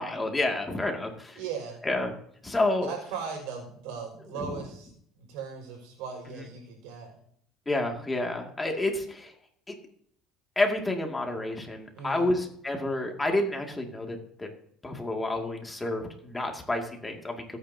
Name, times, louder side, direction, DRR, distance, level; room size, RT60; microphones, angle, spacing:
voice 1, 0.0-1.4 1.8-2.1 2.4-2.9 4.4-4.6 7.7-9.3 10.6-14.5 14.8-17.3, left 2 dB, 15° left, 2 dB, 2.3 m, -29 dB
voice 2, 1.4-1.8 2.8-4.9 5.2-7.1 11.9-12.3, right 6 dB, 80° right, 3 dB, 5.8 m, -38 dB
24.0 x 9.5 x 2.8 m, 0.65 s
cardioid pair, 115°, 0 cm